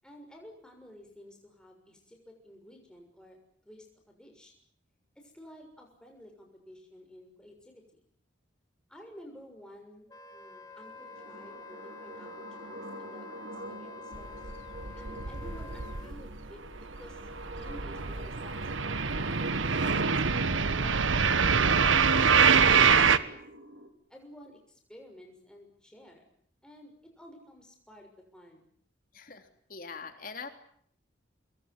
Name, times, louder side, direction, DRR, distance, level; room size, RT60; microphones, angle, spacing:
voice 1, 0.0-3.4 3.6-4.5 5.1-8.0 8.9-14.5 14.9-16.6 17.0-18.9 20.3-21.0 21.3-23.3 24.1-26.2 26.6-28.7, equal, 5° left, 1 dB, 6.6 m, -52 dB
Wind instrument woodwind instrument, 10.1-16.1, left 4 dB, 20° left, 2.3 m, -48 dB
sound 1, 10.8-23.9, right 1 dB, 65° right, 3.7 m, -44 dB
sound 2, 14.1-16.5 16.7-23.2, right 6 dB, 85° right, 1.3 m, -25 dB
voice 2, 29.1-30.5, left 5 dB, 45° left, 7 dB, 3.3 m, -43 dB
25.0 x 22.0 x 9.7 m, 0.64 s
head